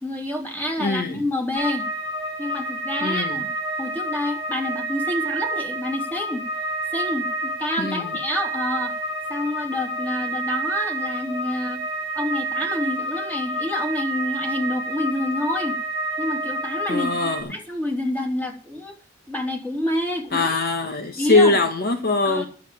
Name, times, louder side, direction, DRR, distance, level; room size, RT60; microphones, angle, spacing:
voice 1, 0.0-1.9 2.4-3.5 3.8-6.4 6.9-8.9 9.3-11.8 12.1-15.8 16.2-18.9 19.3-20.5 21.2-21.6 22.2-22.5, left 1 dB, 10° left, 3.2 m, -28 dB
voice 2, 0.8-1.2 3.0-3.5 7.8-8.1 16.9-17.5 20.3-22.4, left 3 dB, 55° left, 1.6 m, -22 dB
sound 1, 1.6-17.4, right 1 dB, 70° left, 4.4 m, -29 dB
11.0 x 7.5 x 8.3 m
head